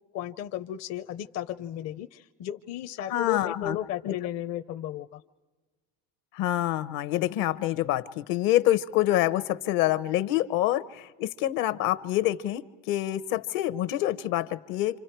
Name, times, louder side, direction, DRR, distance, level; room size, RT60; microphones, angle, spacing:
voice 1, 0.1-5.2, left 12 dB, 45° left, 8 dB, 0.6 m, -34 dB
voice 2, 3.1-3.8 4.0-4.2 6.3-15.0, left 14 dB, 65° left, 13 dB, 1.0 m, -26 dB
28.0 x 27.0 x 4.5 m, 1.3 s
supercardioid pair, 120°, 36 cm